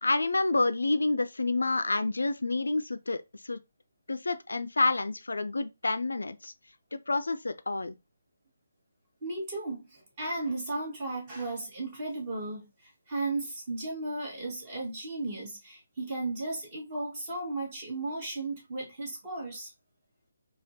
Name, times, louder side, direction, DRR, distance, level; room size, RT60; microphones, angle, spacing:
voice 1, 0.0-3.6 4.1-6.5 6.9-7.9, left 2 dB, 65° left, 0.3 m, -28 dB
voice 2, 9.2-19.7, right 2 dB, 25° right, 1.6 m, -35 dB
4.2 x 2.2 x 2.6 m
figure-of-eight pair, 145°, 0 cm